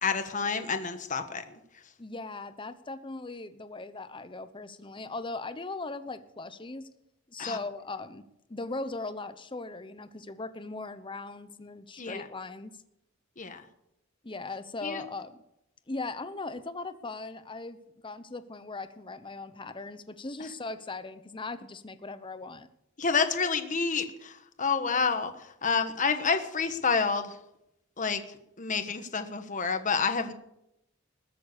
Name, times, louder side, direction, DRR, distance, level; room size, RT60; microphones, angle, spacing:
voice 1, 0.0-1.4 7.4-7.6 12.0-12.3 13.4-13.6 14.8-15.0 23.0-24.3 24.6-25.3 25.6-27.3 28.0-28.2 28.6-30.3, left 5 dB, 40° left, 8 dB, 1.3 m, -28 dB
voice 2, 2.0-6.9 7.3-8.2 8.5-12.7 14.2-15.4 15.9-17.8 18.0-22.7, left 3 dB, 25° left, 12 dB, 0.9 m, -39 dB
20.5 x 7.6 x 6.7 m, 0.83 s
head